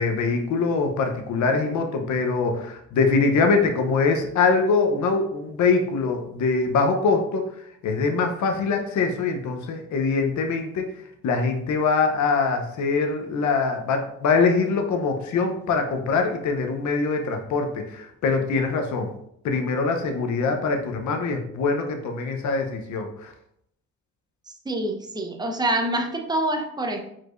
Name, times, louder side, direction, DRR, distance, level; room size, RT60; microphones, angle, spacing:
voice 1, 0.0-7.4 7.8-10.8 11.2-19.1 19.4-23.3, left 4 dB, 70° left, 5 dB, 0.8 m, -23 dB
voice 2, 24.7-27.0, right 1 dB, 15° right, 2 dB, 0.8 m, -26 dB
4.7 x 4.4 x 2.6 m, 0.72 s
cardioid pair, 90°, 30 cm